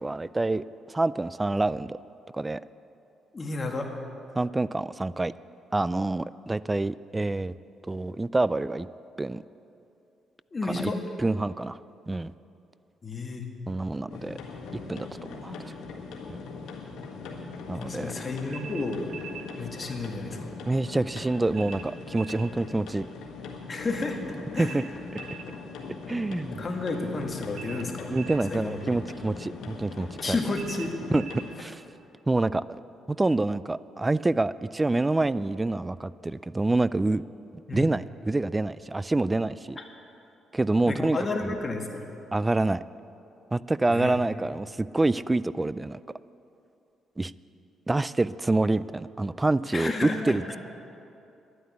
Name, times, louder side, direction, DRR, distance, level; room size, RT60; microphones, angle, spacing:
voice 1, 0.0-2.0 2.3-2.6 4.3-5.3 5.7-7.5 7.9-8.9 9.2-9.4 10.7-10.9 11.2-11.8 12.1-12.3 13.7-14.4 14.9-15.1 15.4-15.7 16.3-16.4 17.7-18.1 20.7-23.1 24.6-24.8 26.1-26.6 28.1-30.4 31.1-31.2 31.6-31.9 32.3-32.8 33.1-37.2 37.7-39.8 40.5-41.5 42.3-42.8 43.5-46.0 47.2-47.3 47.9-50.6, right 2 dB, 15° right, 18 dB, 0.3 m, -27 dB
voice 2, 3.3-3.9 10.5-11.0 13.0-13.5 17.7-19.1 19.6-20.5 23.7-24.2 24.5-24.8 26.5-28.1 28.5-28.8 30.2-31.0 37.7-37.9 39.8-39.9 40.9-42.1 43.9-44.2 49.7-50.4, left 3 dB, 30° left, 2 dB, 1.9 m, -31 dB
sound 1, 14.1-31.6, left 4 dB, 85° left, 1.7 m, -40 dB
sound 2, 18.5-19.5 21.5-22.5 24.5-25.5 27.5-28.5 30.5-31.5, right 7 dB, 75° right, 0.9 m, -42 dB
11.5 x 9.5 x 9.6 m, 2.8 s
cardioid pair, 90°, 0 cm